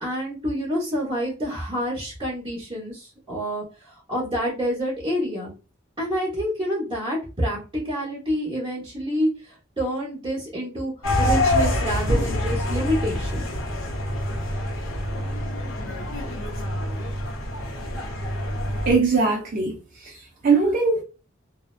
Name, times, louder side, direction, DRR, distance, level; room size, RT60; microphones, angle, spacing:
voice 1, 0.0-5.5 6.0-10.9 11.2-13.5, equal, 25° right, 1.0 m, -28 dB
sound 1, 11.0-18.9, left 1 dB, 90° left, 0.7 m, -26 dB
voice 2, 18.9-21.0, right 4 dB, 45° right, 0.5 m, -21 dB
2.6 x 2.1 x 2.3 m
head